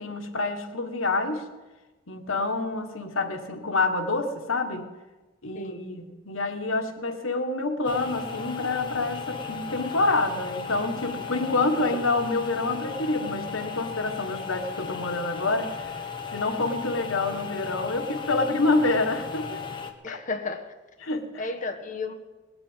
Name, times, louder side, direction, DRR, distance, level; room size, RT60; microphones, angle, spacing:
voice 1, 0.0-1.4 2.1-4.9 5.4-15.9 16.3-19.6 20.1-20.2 21.0-21.3, left 3 dB, 90° left, 1.6 m, -27 dB
voice 2, 5.5-5.9 11.9-12.0 20.0-20.7 21.4-22.1, left 3 dB, 40° left, 1.2 m, -33 dB
sound 1, 7.8-19.9, left 6 dB, 25° left, 1.3 m, -36 dB
19.0 x 7.8 x 9.1 m
head